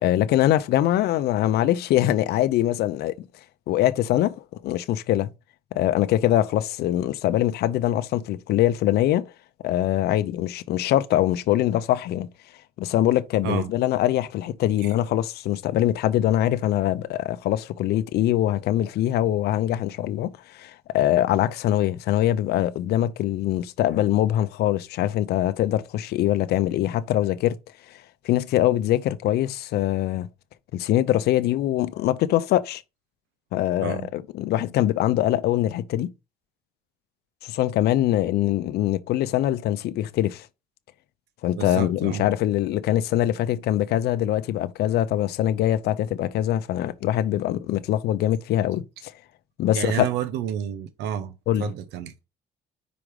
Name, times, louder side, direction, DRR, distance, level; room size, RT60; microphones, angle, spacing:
voice 1, 0.0-3.1 3.7-5.3 5.7-9.3 9.6-12.3 12.8-27.6 27.9-30.3 30.7-32.8 33.5-36.1 37.4-40.5 41.4-49.1 49.6-50.1 51.5-51.7, left 13 dB, 70° left, 0.7 m, -23 dB
voice 2, 41.6-42.3 49.7-52.1, right 9 dB, 85° right, 0.9 m, -30 dB
5.1 x 5.0 x 4.8 m
cardioid pair, 110°, 17 cm